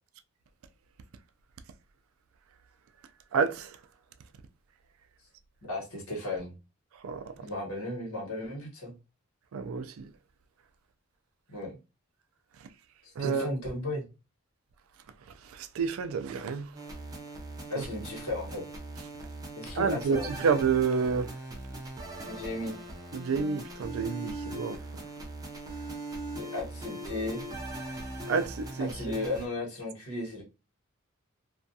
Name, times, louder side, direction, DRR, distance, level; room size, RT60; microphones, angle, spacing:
voice 1, 3.3-3.7 7.0-7.3 9.5-10.1 13.2-13.5 15.5-16.7 17.8-17.9 19.8-21.3 23.1-25.0 28.3-28.9, right 5 dB, 75° right, 0.4 m, -29 dB
voice 2, 5.6-6.5 7.4-8.9 11.5-11.8 13.0-14.0 17.7-18.6 19.6-20.4 22.3-22.8 26.4-27.4 28.8-30.4, left 2 dB, 80° left, 1.2 m, -35 dB
sound 1, 16.7-29.5, right 2 dB, 15° right, 0.5 m, -40 dB
2.4 x 2.3 x 2.6 m
head